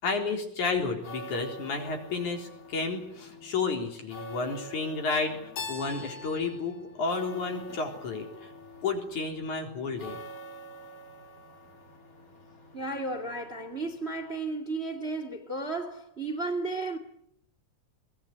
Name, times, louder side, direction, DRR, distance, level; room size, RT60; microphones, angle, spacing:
voice 1, 0.0-5.4 5.7-8.5 8.8-10.2, left 4 dB, 60° left, 5.2 m, -31 dB
sound 1, 0.8-14.3, equal, 25° left, 3.1 m, -47 dB
Keyboard (musical), 5.6-8.4, left 3 dB, 75° left, 6.1 m, -43 dB
voice 2, 12.7-17.0, right 2 dB, 25° right, 1.8 m, -33 dB
23.5 x 20.5 x 9.8 m
omnidirectional pair, 4.0 m